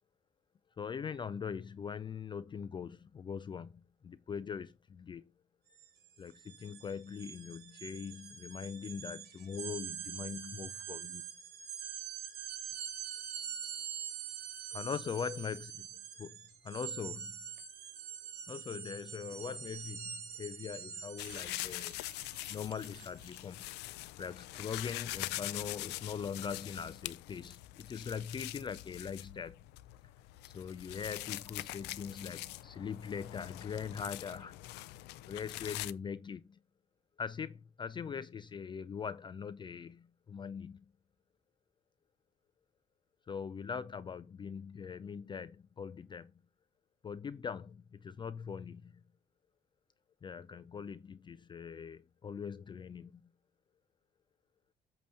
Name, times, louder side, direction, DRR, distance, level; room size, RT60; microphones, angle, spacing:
voice 1, 0.8-3.7 4.0-5.3 6.2-11.2 14.7-15.9 16.2-16.4 16.6-17.3 18.5-22.0 22.5-23.7 24.2-29.6 30.4-34.5 35.3-36.6 37.2-40.9 43.3-46.3 47.0-48.9 50.2-53.2, left 6 dB, 30° left, 0.4 m, -41 dB
sound 1, 5.7-5.9 6.2-23.4, right 9 dB, 75° right, 2.0 m, -45 dB
sound 2, 21.2-35.9, left 17 dB, 85° left, 0.5 m, -44 dB
8.5 x 2.9 x 6.3 m
cardioid pair, 110°, 17 cm